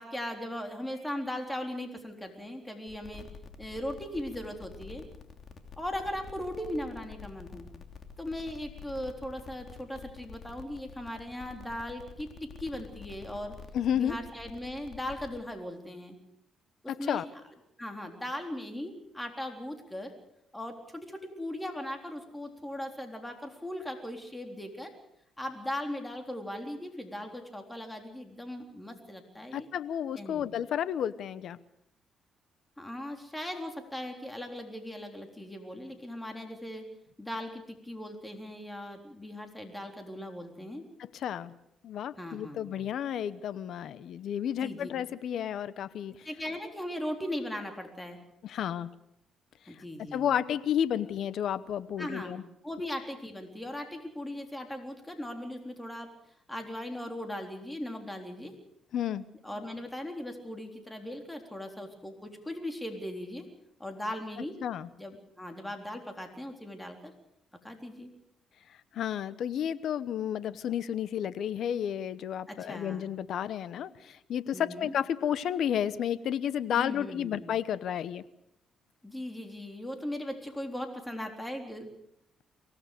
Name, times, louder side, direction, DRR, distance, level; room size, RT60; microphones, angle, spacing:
voice 1, 0.0-3.3 3.6-5.1 5.8-7.7 8.2-13.6 13.9-16.2 16.8-17.2 17.8-20.1 20.5-24.9 25.4-29.7 30.2-30.5 32.8-36.9 37.2-40.9 42.2-42.8 44.6-44.9 46.2-48.2 49.7-50.3 52.0-52.4 52.6-56.1 56.5-58.5 59.4-63.5 63.8-64.6 65.0-67.1 67.6-68.1 72.5-73.1 74.5-74.9 76.8-77.5 79.0-81.9, left 1 dB, 10° left, 4 dB, 3.7 m, -38 dB
sound 1, 2.9-15.4, left 6 dB, 55° left, 2.9 m, -48 dB
voice 2, 13.7-14.2 16.9-17.3 29.5-31.6 41.1-41.5 41.8-46.3 48.4-48.9 49.7-49.8 50.1-52.4 58.9-59.3 64.6-64.9 68.9-78.2, left 9 dB, 70° left, 16 dB, 0.9 m, -32 dB
24.0 x 18.0 x 6.7 m, 0.78 s
cardioid pair, 90°, 0 cm